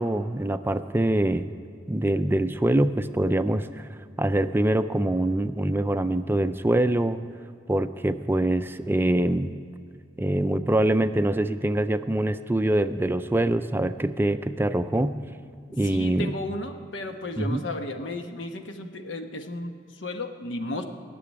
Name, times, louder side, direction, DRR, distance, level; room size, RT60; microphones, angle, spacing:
voice 1, 0.0-1.5 1.9-3.9 4.2-7.2 7.7-9.5 10.2-15.2 15.7-16.4 17.4-17.6, right 1 dB, 10° right, 10 dB, 0.4 m, -24 dB
voice 2, 15.7-20.8, left 1 dB, 85° left, 6 dB, 1.1 m, -34 dB
17.5 x 7.0 x 9.8 m, 2.1 s
head